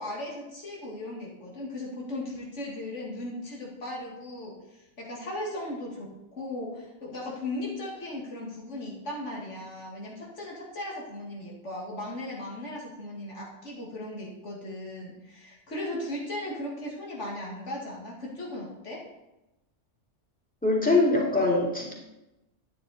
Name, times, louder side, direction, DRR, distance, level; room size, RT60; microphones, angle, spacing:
voice 1, 0.0-19.0, left 1 dB, 70° left, -3 dB, 2.3 m, -37 dB
voice 2, 20.6-21.9, left 2 dB, 5° left, -3 dB, 2.4 m, -23 dB
11.5 x 9.1 x 4.1 m, 0.98 s
omnidirectional pair, 1.3 m